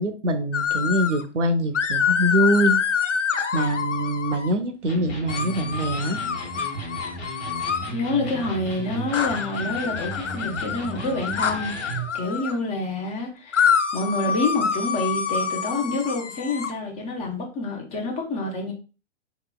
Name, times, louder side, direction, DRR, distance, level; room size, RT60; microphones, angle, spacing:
voice 1, 0.0-2.8 3.5-6.2, right 1 dB, 80° right, 0.7 m, -24 dB
sound 1, 0.5-1.2 1.7-4.5 5.3-7.9 9.1-12.6 13.5-16.7, left 7 dB, 80° left, 0.6 m, -26 dB
Electric guitar, 4.9-12.2, right 2 dB, 60° left, 1.3 m, -35 dB
voice 2, 7.9-18.7, left 2 dB, 20° left, 0.6 m, -28 dB
4.4 x 2.9 x 2.2 m
figure-of-eight pair, 110°, 36 cm